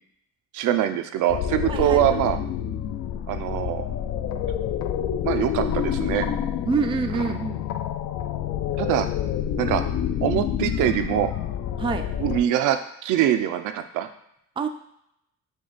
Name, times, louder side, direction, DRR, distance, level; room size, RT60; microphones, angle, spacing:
voice 1, 0.5-2.4 3.3-3.9 5.2-6.3 7.1-7.2 8.8-9.1 9.6-9.8 10.2-11.3 12.2-14.1, right 11 dB, 85° right, 8 dB, 0.5 m, -23 dB
sound 1, 1.3-12.4, left 9 dB, 60° left, 0.4 m, -28 dB
voice 2, 1.7-2.0 6.6-7.6 11.8-12.1 14.6-14.7, right 5 dB, 20° right, 7 dB, 0.3 m, -26 dB
5.1 x 2.3 x 3.9 m, 0.76 s
cardioid pair, 90°, 30 cm